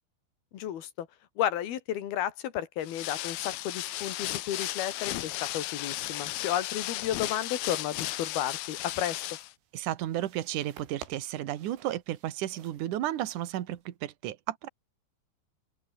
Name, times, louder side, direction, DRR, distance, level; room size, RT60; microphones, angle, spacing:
voice 1, 0.5-1.1 1.4-9.2, left 11 dB, 60° left, 3.8 m, -33 dB
sound 1, 2.8-9.5, left 16 dB, 80° left, 2.3 m, -35 dB
sound 2, 9.0-14.0, right 9 dB, 85° right, 5.7 m, -53 dB
voice 2, 9.7-14.7, right 13 dB, 65° right, 2.1 m, -33 dB
omnidirectional pair, 5.5 m